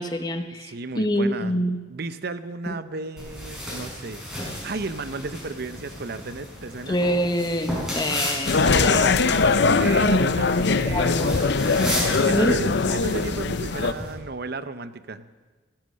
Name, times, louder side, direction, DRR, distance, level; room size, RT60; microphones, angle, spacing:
voice 1, 0.0-1.8 2.7-2.8 6.9-9.0 10.9-12.6, equal, 20° left, 6 dB, 0.9 m, -26 dB
voice 2, 0.6-1.6 1.9-4.2 4.6-7.0 8.5-11.2 12.3-15.2, right 3 dB, 50° right, 12 dB, 0.7 m, -33 dB
sound 1, 3.2-14.1, equal, ahead, 5.9 m, -34 dB
sound 2, 8.5-13.9, left 4 dB, 60° left, 0.6 m, -21 dB
16.0 x 12.0 x 6.3 m, 1.4 s
head